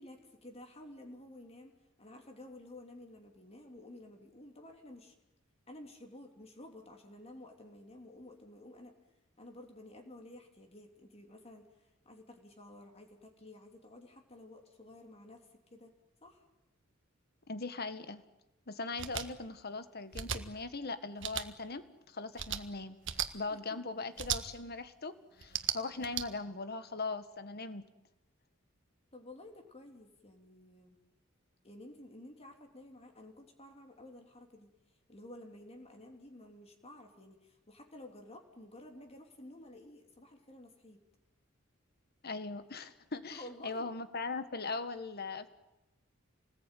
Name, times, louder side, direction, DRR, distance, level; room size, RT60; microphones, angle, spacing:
voice 1, 0.0-5.1 5.7-8.9 9.4-15.9 16.2-16.4 23.5-23.8 29.1-31.0 31.6-34.7 35.1-41.0 43.3-43.9, left 1 dB, 30° left, 3 dB, 3.4 m, -52 dB
voice 2, 17.5-18.2 18.7-27.8 42.2-45.5, left 3 dB, 50° left, 11 dB, 1.7 m, -40 dB
sound 1, 19.0-19.3 20.1-20.4 21.2-21.5 22.4-22.6 23.0-23.3 24.2-24.4 25.4-26.2, right 9 dB, 65° right, 1.5 m, -35 dB
27.5 x 19.5 x 9.3 m, 0.98 s
head